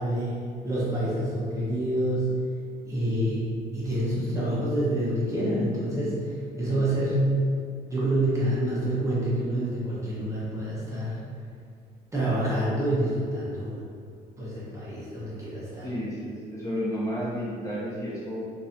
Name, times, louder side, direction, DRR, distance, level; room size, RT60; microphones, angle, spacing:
voice 1, 0.0-2.3 2.9-6.3 6.6-7.4 7.9-11.2 12.1-13.8 14.4-15.9, right 1 dB, 20° right, -8 dB, 1.0 m, -27 dB
voice 2, 15.8-18.4, equal, 20° left, -8 dB, 0.9 m, -31 dB
3.8 x 2.8 x 2.6 m, 2.1 s
cardioid pair, 110°, 17 cm